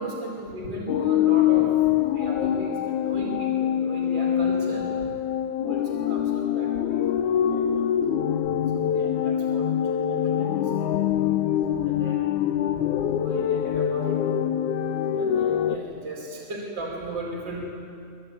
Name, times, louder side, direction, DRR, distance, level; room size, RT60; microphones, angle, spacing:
voice 1, 0.0-1.7 2.1-4.8 5.7-7.0 7.3-7.9 8.7-9.7 10.1-11.1 11.8-12.3 13.0-14.2 15.1-17.6, right 2 dB, 35° right, -1 dB, 5.7 m, -36 dB
sound 1, 0.9-15.8, left 10 dB, 80° left, 2.3 m, -24 dB
26.5 x 22.5 x 9.7 m, 2.5 s
omnidirectional pair, 3.5 m